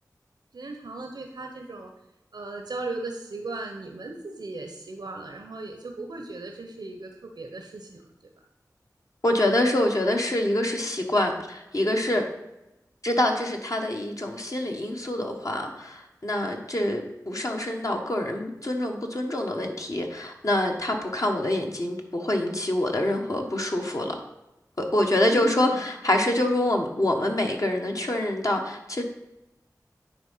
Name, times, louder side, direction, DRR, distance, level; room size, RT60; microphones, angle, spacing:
voice 1, 0.5-1.9 2.3-8.3 25.3-25.8, right 3 dB, 90° right, 3 dB, 0.7 m, -37 dB
voice 2, 9.2-12.2 13.0-24.2 24.8-29.0, left 1 dB, 55° left, 2 dB, 1.3 m, -26 dB
9.3 x 3.7 x 5.5 m, 0.94 s
wide cardioid pair, 45°, 7 cm